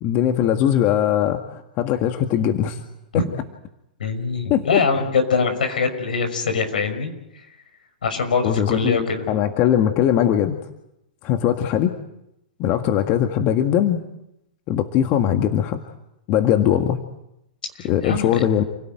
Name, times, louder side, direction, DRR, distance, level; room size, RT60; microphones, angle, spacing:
voice 1, 0.0-2.8 3.1-3.2 4.5-4.8 8.4-10.6 11.2-12.0 12.6-14.0 14.7-15.8 16.3-17.0 17.8-18.6, left 10 dB, 40° left, 6 dB, 1.9 m, -20 dB
voice 2, 4.0-7.1 8.0-9.2 17.8-18.3, left 5 dB, 75° left, 7 dB, 5.8 m, -23 dB
29.0 x 17.5 x 9.2 m, 0.85 s
hypercardioid pair, 110°, 5 cm